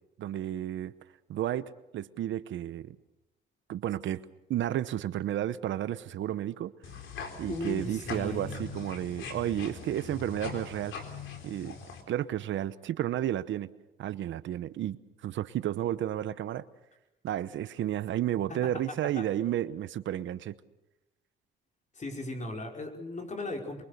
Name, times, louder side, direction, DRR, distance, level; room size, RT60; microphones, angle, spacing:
voice 1, 0.2-0.9 1.3-3.0 3.7-4.2 4.5-6.7 7.4-10.9 11.4-11.8 12.1-13.7 14.0-16.6 17.2-20.6, right 12 dB, 75° right, 14 dB, 1.0 m, -32 dB
sound 1, 6.8-12.0, left 5 dB, 75° left, 4.1 m, -41 dB
voice 2, 7.5-8.6 18.5-19.3 21.9-23.8, left 1 dB, 35° left, 3 dB, 5.3 m, -37 dB
24.0 x 24.0 x 6.7 m, 0.94 s
cardioid pair, 90°, 20 cm